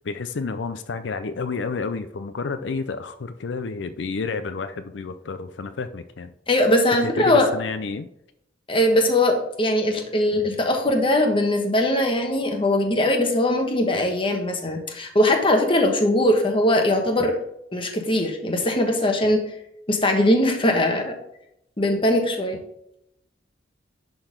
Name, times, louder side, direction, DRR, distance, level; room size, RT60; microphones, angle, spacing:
voice 1, 0.0-6.3 7.0-8.1, left 4 dB, 90° left, 10 dB, 0.5 m, -30 dB
voice 2, 6.5-7.5 8.7-17.4 17.7-19.4 19.9-21.1 21.8-22.6, left 1 dB, 30° left, 3 dB, 1.3 m, -20 dB
10.5 x 3.9 x 5.1 m, 0.79 s
head